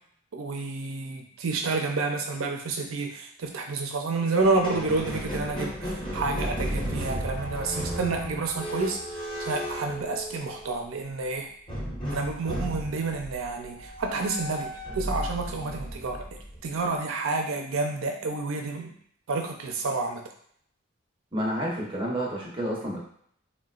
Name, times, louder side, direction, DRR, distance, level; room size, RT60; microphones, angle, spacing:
voice 1, 0.3-11.5 12.1-16.2 16.6-18.9 19.3-20.2, right 3 dB, 85° right, 3 dB, 0.5 m, -29 dB
Squeak, 4.4-10.7 11.7-16.8, equal, 25° left, 1.1 m, -34 dB
voice 2, 21.3-23.0, equal, 25° right, -4 dB, 0.7 m, -30 dB
3.8 x 2.2 x 2.3 m, 0.65 s
head